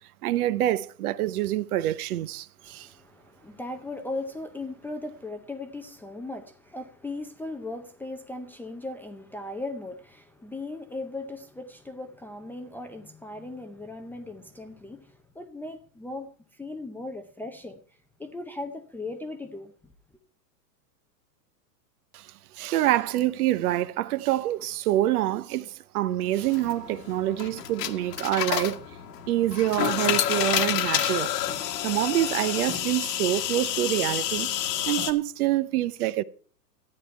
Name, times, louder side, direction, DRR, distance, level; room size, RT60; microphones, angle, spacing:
voice 1, 0.2-2.9 22.1-28.8 29.3-31.3 31.8-34.5 34.9-36.2, right 14 dB, 60° right, 0.8 m, -26 dB
voice 2, 2.6-17.8 18.2-19.7, left 2 dB, 5° left, 0.5 m, -38 dB
sound 1, 26.4-35.1, left 11 dB, 70° left, 1.5 m, -29 dB
13.0 x 9.4 x 4.5 m
hypercardioid pair, 125°, 50 cm